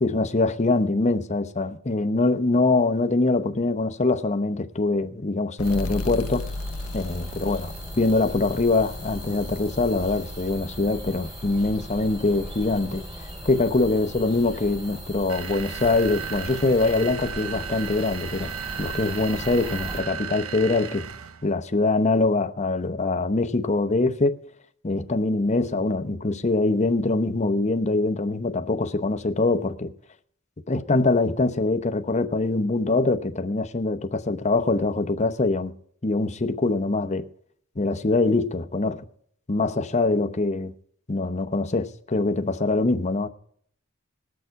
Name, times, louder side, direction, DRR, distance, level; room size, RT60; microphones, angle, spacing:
voice 1, 0.0-6.4 6.9-13.0 13.4-18.5 18.8-21.0 21.4-24.4 24.8-29.9 30.7-35.8 36.0-37.3 37.8-39.0 39.5-40.7 41.1-43.3, left 3 dB, 30° left, 0.8 m, -23 dB
sound 1, 5.6-12.9, left 2 dB, 85° left, 0.6 m, -37 dB
sound 2, 5.6-20.0, equal, 20° right, 3.6 m, -39 dB
sound 3, 15.3-21.5, right 7 dB, 70° right, 0.7 m, -36 dB
19.5 x 6.7 x 4.7 m
head